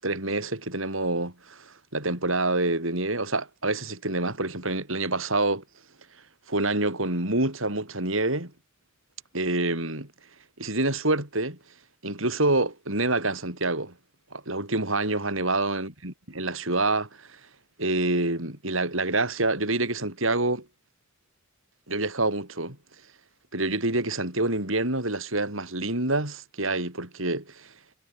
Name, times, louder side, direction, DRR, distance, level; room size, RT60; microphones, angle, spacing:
voice 1, 0.0-5.6 6.5-8.5 9.3-10.1 10.6-11.6 12.0-13.9 14.3-17.4 17.8-20.6 21.9-22.8 23.5-27.7, right 2 dB, 75° right, 8.0 m, -27 dB
head